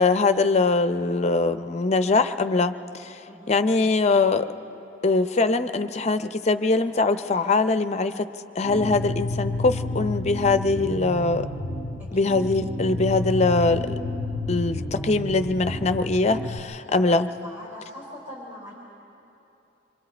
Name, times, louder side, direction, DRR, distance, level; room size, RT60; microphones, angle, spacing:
voice 1, 0.0-3.2 3.5-4.5 5.0-8.3 8.6-11.5 12.1-14.0 14.5-17.3, left 3 dB, 35° left, 10 dB, 0.6 m, -22 dB
voice 2, 3.3-4.0 12.0-12.3 16.8-18.7, left 1 dB, 10° right, -7 dB, 3.9 m, -43 dB
sound 1, 8.6-16.6, left 2 dB, 35° right, 1.2 m, -30 dB
27.0 x 23.0 x 4.4 m, 2.8 s
head